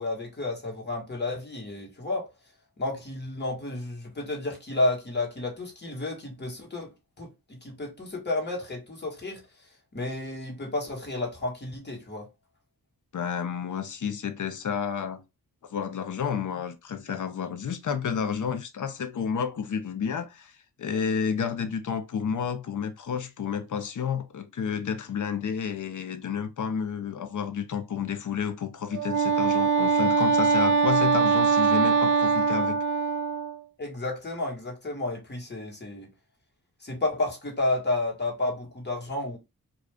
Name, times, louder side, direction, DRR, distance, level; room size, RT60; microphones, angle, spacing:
voice 1, 0.0-2.3 2.8-6.9 7.2-9.4 9.9-12.3 33.8-36.1 36.8-39.4, left 2 dB, 30° left, 1.4 m, -31 dB
voice 2, 13.1-15.2 15.6-32.8, left 7 dB, 55° left, 0.7 m, -31 dB
Wind instrument woodwind instrument, 28.9-33.6, right 5 dB, 55° right, 0.4 m, -22 dB
2.4 x 2.4 x 3.3 m
cardioid pair, 60°, 36 cm